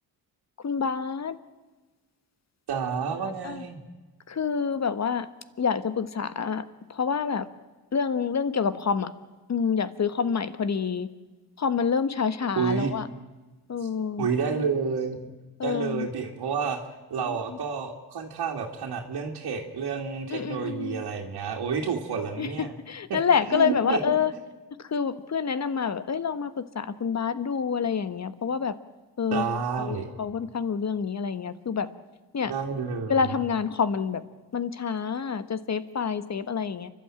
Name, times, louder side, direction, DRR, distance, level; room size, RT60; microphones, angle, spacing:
voice 1, 0.6-1.4 3.2-3.6 4.3-5.3 5.6-7.5 7.9-9.1 9.5-11.1 11.6-13.1 13.7-14.3 15.6-16.1 17.2-17.6 20.3-21.0 22.4-24.3 24.8-28.7 29.2-29.5 29.8-31.9 32.3-32.5 33.1-34.2 34.5-36.9, left 6 dB, 40° left, 13 dB, 1.4 m, -27 dB
voice 2, 2.7-3.8 12.6-12.9 14.2-15.2 15.6-16.8 17.1-22.7 23.5-24.0 29.3-30.1 32.5-33.2, right 6 dB, 70° right, -3 dB, 2.5 m, -29 dB
29.5 x 12.5 x 9.0 m, 1.2 s
cardioid pair, 90°, 40 cm